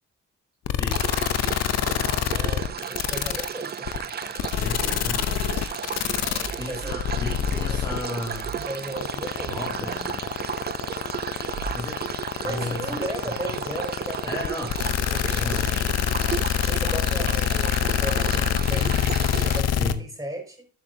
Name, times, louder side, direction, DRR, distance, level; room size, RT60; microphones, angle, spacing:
sound 1, 0.7-19.9, left 9 dB, 60° left, 0.7 m, -25 dB
voice 1, 0.7-1.1 4.5-5.3 6.6-8.5 9.5-10.3 11.7-12.1 12.4-13.0 13.3-13.4 14.2-14.7 15.3-16.1 19.7-20.0, left 1 dB, 15° left, 2.3 m, -34 dB
sound 2, 0.9-19.6, right 8 dB, 35° right, 0.4 m, -34 dB
voice 2, 2.3-4.0 6.3-7.0 8.5-9.6 12.4-14.4 15.1-15.4 16.6-19.0 19.5-20.7, right 1 dB, 10° right, 5.1 m, -35 dB
sound 3, 4.4-13.6, right 4 dB, 50° right, 1.5 m, -44 dB
12.5 x 8.0 x 2.7 m
cardioid pair, 90°, 30 cm